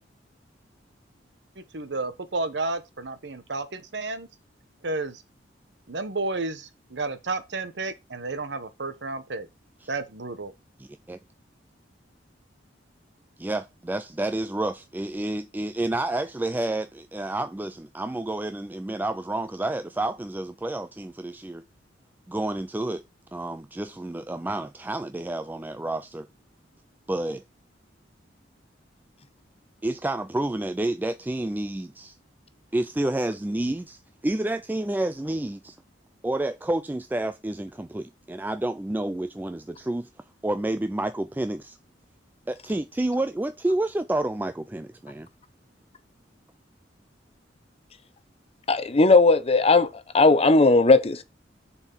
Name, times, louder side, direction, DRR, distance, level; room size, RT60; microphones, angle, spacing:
voice 1, 1.6-4.3 4.8-5.2 5.9-9.5 9.9-10.5, right 3 dB, 65° right, 1.1 m, -31 dB
voice 2, 13.9-21.6 22.3-23.0 23.3-26.3 27.1-27.4 29.8-32.2 32.7-35.8 36.2-40.1 40.4-41.8 42.5-45.3, right 1 dB, 10° right, 0.3 m, -29 dB
voice 3, 48.7-49.9 50.1-51.2, left 3 dB, 35° left, 0.8 m, -17 dB
6.9 x 4.5 x 5.5 m
head